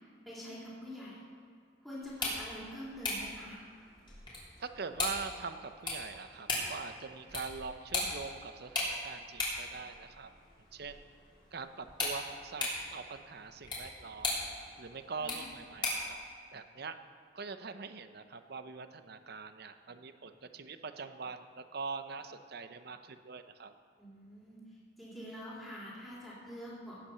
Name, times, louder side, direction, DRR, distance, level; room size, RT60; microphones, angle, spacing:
voice 1, 0.2-1.3 1.8-3.6 15.2-15.5 24.0-24.6 25.0-27.0, equal, ahead, -7 dB, 3.2 m, -46 dB
sound 1, 2.0-16.1, left 2 dB, 25° left, 3.3 m, -39 dB
voice 2, 4.6-10.3 10.7-11.0 11.5-14.3 14.8-16.2 16.5-17.0 17.3-23.7, right 4 dB, 55° right, 9 dB, 0.7 m, -43 dB
17.5 x 6.0 x 6.8 m, 2.3 s
head